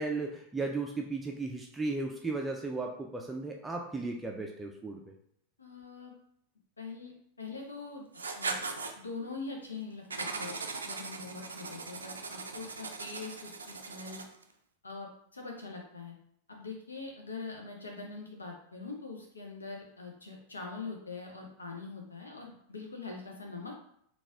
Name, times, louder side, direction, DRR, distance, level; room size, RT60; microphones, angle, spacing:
voice 1, 0.0-5.1, right 3 dB, 10° right, 1 dB, 0.4 m, -35 dB
voice 2, 5.6-6.1 6.8-7.1 7.4-8.6 9.0-10.6 10.8-14.2 14.8-16.1 16.5-23.7, left 4 dB, 75° left, 1 dB, 0.6 m, -43 dB
Writing, 8.1-8.9 10.1-14.4, right 4 dB, 75° right, 0.4 m, -39 dB
4.0 x 2.4 x 3.4 m, 0.70 s
figure-of-eight pair, 90°, 0 cm